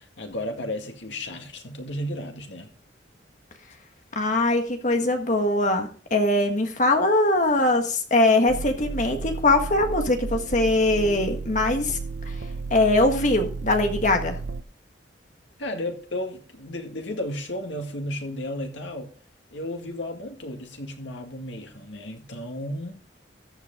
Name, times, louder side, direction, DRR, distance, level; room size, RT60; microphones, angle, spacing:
voice 1, 0.0-2.7 15.6-19.1 19.5-23.0, left 1 dB, 85° left, 2.1 m, -33 dB
voice 2, 4.1-12.0 12.7-14.4, left 2 dB, 40° left, 1.6 m, -22 dB
sound 1, 8.5-14.6, right 4 dB, 65° right, 0.6 m, -33 dB
14.0 x 8.1 x 3.7 m
head